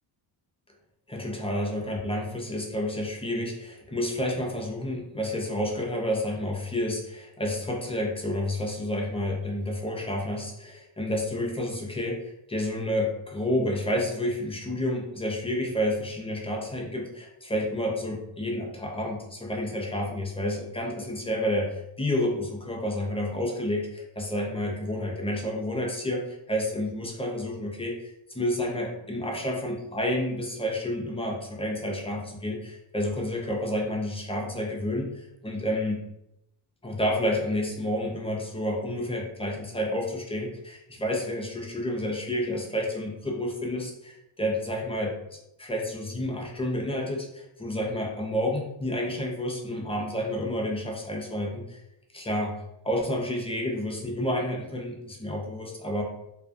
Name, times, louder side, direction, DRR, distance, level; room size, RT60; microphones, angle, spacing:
voice 1, 1.1-36.0 36.8-51.8 52.1-52.5 52.8-56.0, left 1 dB, 15° left, 0 dB, 0.4 m, -30 dB
2.3 x 2.3 x 2.5 m, 0.84 s
cardioid pair, 85°, 50 cm